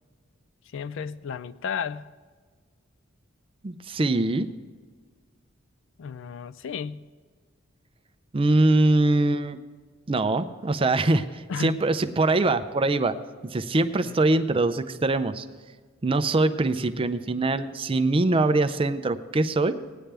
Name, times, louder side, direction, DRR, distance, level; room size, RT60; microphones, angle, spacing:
voice 1, 0.7-2.1 6.0-7.1 11.5-11.8 14.0-14.4, left 6 dB, 70° left, 0.4 m, -34 dB
voice 2, 3.6-4.5 8.3-9.6 10.1-13.1 13.4-15.5 16.0-19.7, right 2 dB, 25° right, 0.5 m, -23 dB
17.5 x 10.0 x 3.4 m
head